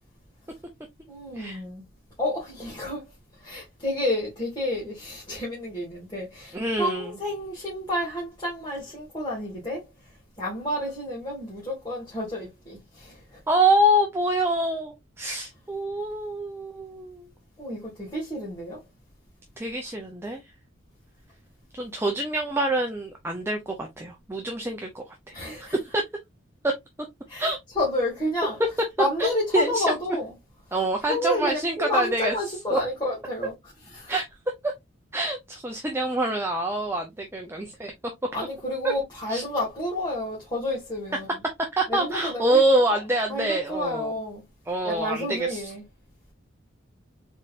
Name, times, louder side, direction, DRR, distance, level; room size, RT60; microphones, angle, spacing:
voice 1, 1.1-1.8 2.2-3.0 3.4-9.9 10.4-13.4 17.6-18.8 25.3-25.8 27.3-28.6 29.0-30.3 31.0-33.5 33.9-34.2 38.3-41.3 41.9-43.0 43.3-44.4 44.8-45.8, left 1 dB, 20° left, 1.7 m, -30 dB
voice 2, 6.5-7.1 13.5-17.3 19.6-20.4 21.7-25.0 25.6-26.0 26.6-26.7 27.4-27.6 29.2-29.9 30.7-32.3 32.7-32.8 34.1-34.2 34.6-34.7 35.1-37.9 38.8-38.9 39.3-39.4 41.8-44.2 44.7-45.7, right 1 dB, 10° right, 0.6 m, -26 dB
4.0 x 3.7 x 2.4 m
head